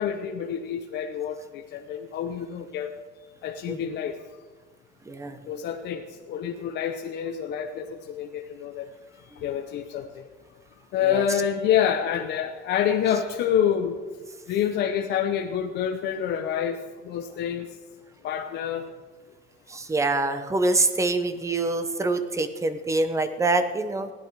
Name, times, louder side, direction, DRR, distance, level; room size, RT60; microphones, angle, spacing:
voice 1, 0.0-2.9 3.4-4.2 5.5-8.9 9.4-10.1 10.9-14.0 14.5-17.7 18.2-18.9, left 9 dB, 65° left, 3 dB, 0.9 m, -27 dB
voice 2, 5.1-5.6 11.0-11.3 19.7-24.1, right 2 dB, 15° right, 10 dB, 0.9 m, -25 dB
16.5 x 11.0 x 4.7 m, 1.4 s
cardioid pair, 160°, 19 cm